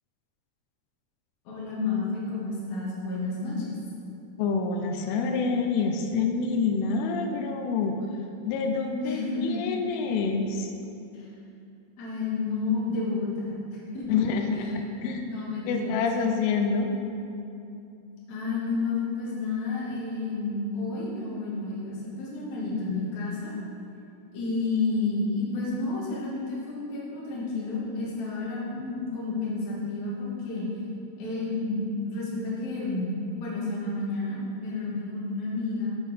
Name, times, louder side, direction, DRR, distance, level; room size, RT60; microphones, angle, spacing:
voice 1, 1.4-3.8 9.0-9.6 11.1-11.3 12.0-14.2 14.5-14.7 15.2-16.1 18.3-23.5 24.3-30.7 31.2-35.9, left 3 dB, 55° left, -6 dB, 2.3 m, -31 dB
voice 2, 4.4-8.0 8.5-10.7 14.1-15.3 15.7-16.9, left 5 dB, 90° left, 4 dB, 3.1 m, -27 dB
7.7 x 7.1 x 4.1 m, 2.7 s
omnidirectional pair, 5.5 m